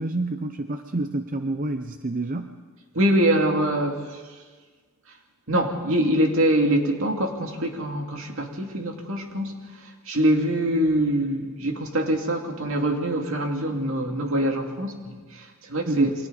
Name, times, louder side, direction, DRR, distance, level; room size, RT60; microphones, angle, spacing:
voice 1, 0.0-2.5 15.8-16.1, right 2 dB, 40° right, 7 dB, 0.7 m, -28 dB
voice 2, 2.9-4.2 5.5-9.6 10.1-16.1, right 1 dB, 65° right, 2 dB, 2.5 m, -24 dB
29.0 x 24.0 x 4.1 m, 1.5 s
head